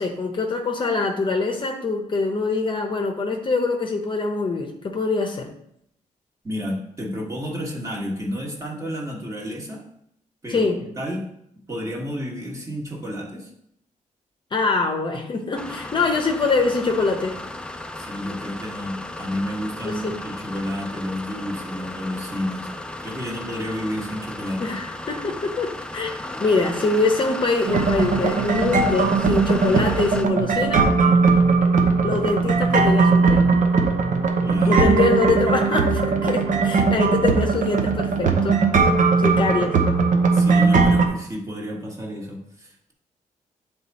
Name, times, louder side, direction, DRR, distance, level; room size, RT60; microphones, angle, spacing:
voice 1, 0.0-5.5 10.5-10.8 14.5-17.4 19.8-20.2 24.6-26.1 26.4-30.9 32.0-33.5 34.7-38.6 39.2-39.8, left 3 dB, 35° left, 3 dB, 0.8 m, -24 dB
voice 2, 6.4-9.9 10.4-11.3 11.7-13.5 18.0-22.7 23.0-24.7 34.4-34.8 40.3-42.9, equal, 20° right, -1 dB, 1.4 m, -31 dB
sound 1, 15.6-30.3, left 1 dB, 5° left, 0.4 m, -34 dB
sound 2, 27.7-41.1, right 4 dB, 70° right, 0.9 m, -19 dB
9.3 x 3.5 x 4.1 m, 0.74 s
wide cardioid pair, 135°, 14 cm